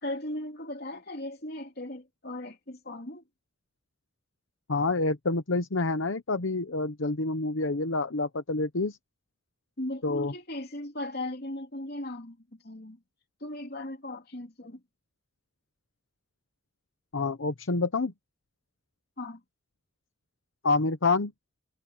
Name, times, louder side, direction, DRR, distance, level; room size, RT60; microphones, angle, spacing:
voice 1, 0.0-3.2 9.8-13.0 13.4-14.8 19.2-19.4, left 1 dB, 50° left, 2.8 m, -37 dB
voice 2, 4.7-9.0 10.0-10.3 17.1-18.1 20.6-21.3, left 3 dB, 75° left, 1.0 m, -27 dB
head